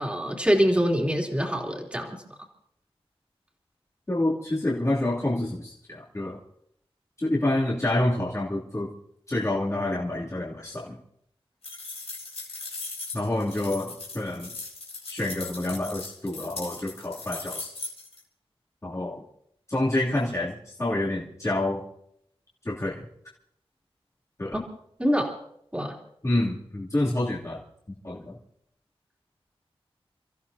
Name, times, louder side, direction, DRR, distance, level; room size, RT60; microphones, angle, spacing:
voice 1, 0.0-2.2 24.5-24.6 25.0-25.3 25.7-25.9, equal, 10° right, 1 dB, 3.3 m, -24 dB
voice 2, 4.1-6.4 7.2-8.9 9.3-11.0 13.1-14.5 15.1-17.7 18.8-19.2 19.7-21.8 22.6-23.0 24.4-24.6 26.2-27.6 28.0-28.4, left 1 dB, 30° left, -6 dB, 2.9 m, -28 dB
sound 1, 11.6-18.2, left 3 dB, 90° left, 3.9 m, -39 dB
30.0 x 15.0 x 2.8 m, 0.73 s
wide cardioid pair, 85°, 10 cm